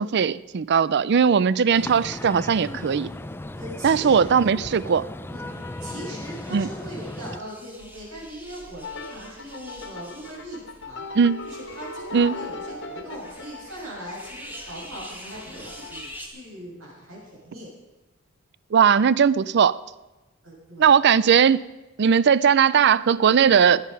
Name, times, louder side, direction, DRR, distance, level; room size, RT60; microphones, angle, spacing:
voice 1, 0.0-3.1 3.8-5.1 6.5-6.7 11.2-11.4 12.1-12.3 18.7-19.7 20.8-21.6 22.0-23.9, right 7 dB, 55° right, 18 dB, 0.4 m, -19 dB
sound 1, 1.7-7.4, left 1 dB, 10° left, 0.4 m, -36 dB
voice 2, 3.5-4.3 5.3-5.5 5.8-11.0 11.4-17.7 20.4-20.9, right 1 dB, 70° right, -4 dB, 6.7 m, -40 dB
sound 2, 5.4-16.3, equal, 10° right, 2.2 m, -46 dB
sound 3, 8.8-16.1, left 3 dB, 60° left, 1.6 m, -39 dB
17.5 x 11.0 x 5.4 m, 1.1 s
head